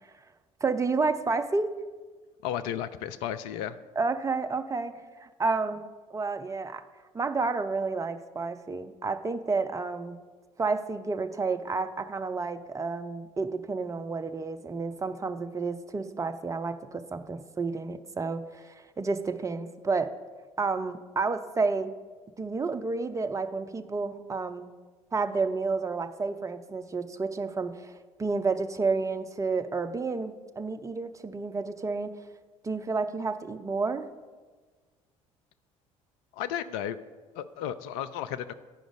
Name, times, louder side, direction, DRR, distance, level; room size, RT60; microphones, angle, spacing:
voice 1, 0.6-1.7 4.0-4.9 5.2-5.8 6.1-6.8 7.1-10.2 10.6-20.1 20.6-21.9 22.4-24.7 25.1-32.1 32.6-34.1, right 4 dB, 20° right, 9 dB, 0.5 m, -30 dB
voice 2, 2.4-3.8 36.3-37.0 37.4-38.5, left 10 dB, 60° left, 12 dB, 0.4 m, -33 dB
10.5 x 5.1 x 5.1 m, 1.4 s
figure-of-eight pair, 55°, 18 cm